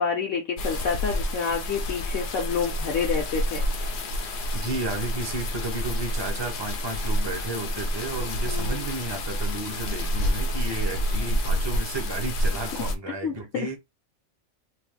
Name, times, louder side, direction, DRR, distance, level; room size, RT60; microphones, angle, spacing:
voice 1, 0.0-3.6 8.5-8.9 10.7-10.8 13.2-13.7, left 6 dB, 80° left, 1.1 m, -28 dB
sound 1, 0.6-12.9, equal, 60° left, 0.6 m, -28 dB
voice 2, 4.5-13.8, right 3 dB, 25° right, 0.7 m, -33 dB
2.6 x 2.4 x 3.5 m
omnidirectional pair, 1.3 m